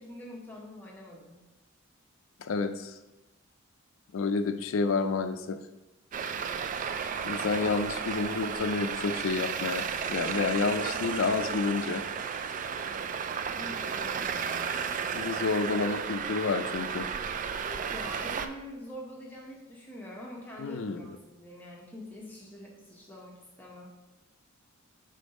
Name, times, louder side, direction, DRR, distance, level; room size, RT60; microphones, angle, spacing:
voice 1, 0.0-1.4 12.8-13.1 13.5-15.1 17.7-23.9, left 1 dB, 10° left, -3 dB, 0.8 m, -45 dB
voice 2, 2.4-2.9 4.1-5.6 7.2-12.0 15.1-17.1 20.6-21.2, left 4 dB, 75° left, 9 dB, 0.4 m, -29 dB
Traffic noise roadway noise, 6.1-18.5, right 6 dB, 40° right, 0.3 m, -33 dB
5.2 x 3.8 x 5.3 m, 1.0 s
head